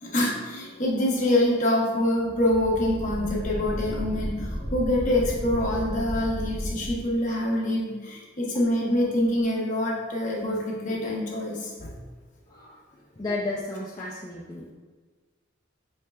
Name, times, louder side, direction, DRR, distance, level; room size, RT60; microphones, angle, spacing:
voice 1, 0.0-11.9, left 1 dB, 35° left, -3 dB, 0.8 m, -25 dB
sound 1, 2.2-7.0, equal, 45° right, 1.3 m, -33 dB
voice 2, 12.5-14.7, left 2 dB, 20° left, -5 dB, 0.3 m, -34 dB
5.6 x 3.2 x 2.2 m, 1.4 s
head